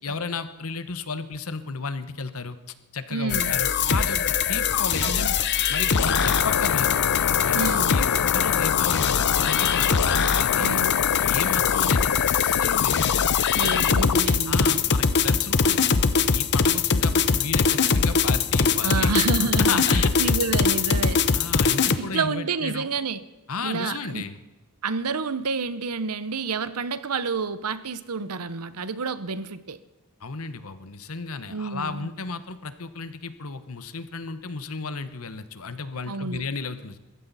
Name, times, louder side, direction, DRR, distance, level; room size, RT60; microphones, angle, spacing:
voice 1, 0.0-2.6 2.9-5.3 5.7-7.0 7.4-7.6 7.9-10.9 11.2-13.2 13.6-13.8 14.5-19.2 19.6-20.3 21.3-22.9 23.5-24.4 30.2-37.0, left 4 dB, 70° left, 11 dB, 1.1 m, -33 dB
voice 2, 3.1-3.5 5.0-5.3 7.5-8.0 10.6-10.9 13.5-14.8 18.8-21.2 22.0-23.2 23.6-24.2 24.8-29.8 31.5-32.1 36.1-36.4, right 4 dB, 90° right, 14 dB, 0.9 m, -29 dB
sound 1, 3.3-22.0, left 6 dB, 50° left, 0.8 m, -22 dB
sound 2, 5.9-14.2, left 7 dB, 85° left, 0.5 m, -26 dB
21.5 x 15.0 x 4.2 m, 1.1 s
head